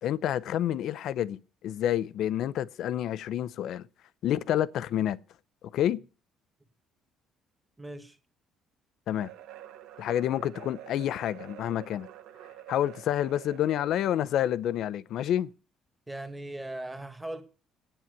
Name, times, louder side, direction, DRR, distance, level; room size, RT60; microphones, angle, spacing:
voice 1, 0.0-3.9 4.2-5.2 5.7-6.0 9.1-9.3 10.0-12.1 12.7-15.5, left 11 dB, 60° left, 0.6 m, -28 dB
voice 2, 7.8-8.2 16.1-17.4, right 1 dB, 10° right, 1.9 m, -38 dB
sound 1, 9.1-14.5, right 12 dB, 85° right, 2.0 m, -48 dB
9.1 x 8.8 x 9.3 m
cardioid pair, 150°, 0 cm